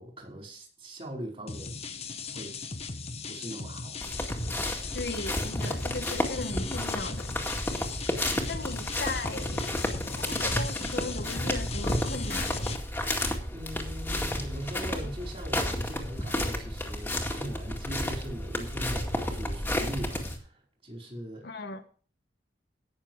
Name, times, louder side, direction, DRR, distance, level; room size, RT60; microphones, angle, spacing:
voice 1, 0.0-1.8 2.2-2.6 3.3-4.0 8.4-8.6 13.5-21.5, equal, 35° right, 4.8 m, -40 dB
sound 1, 1.5-12.8, left 4 dB, 35° left, 1.1 m, -38 dB
sound 2, 4.0-20.4, left 1 dB, 10° left, 2.0 m, -32 dB
voice 2, 4.9-7.3 8.5-9.8 10.2-12.7 21.4-21.9, left 3 dB, 65° left, 1.2 m, -37 dB
17.5 x 6.8 x 4.7 m
head